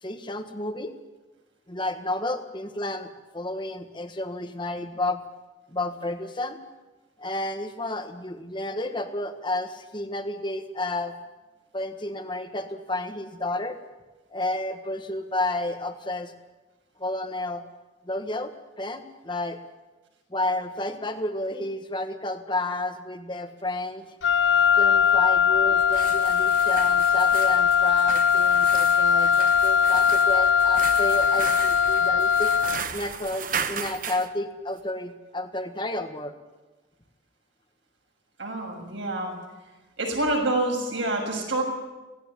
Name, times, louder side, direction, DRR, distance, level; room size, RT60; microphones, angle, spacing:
voice 1, 0.0-1.0 1.7-5.2 5.7-6.6 7.2-11.1 11.7-13.8 14.3-16.3 17.0-17.6 18.0-19.6 20.3-24.1 24.8-32.5 32.9-36.3, left 2 dB, 25° left, 7 dB, 1.5 m, -31 dB
Wind instrument woodwind instrument, 24.2-32.9, left 7 dB, 75° left, 0.6 m, -20 dB
sound 1, 25.7-34.3, right 6 dB, 45° right, 1.1 m, -36 dB
voice 2, 38.4-39.3 40.0-41.6, right 2 dB, 75° right, 1 dB, 6.8 m, -27 dB
17.5 x 17.0 x 9.8 m, 1.2 s
head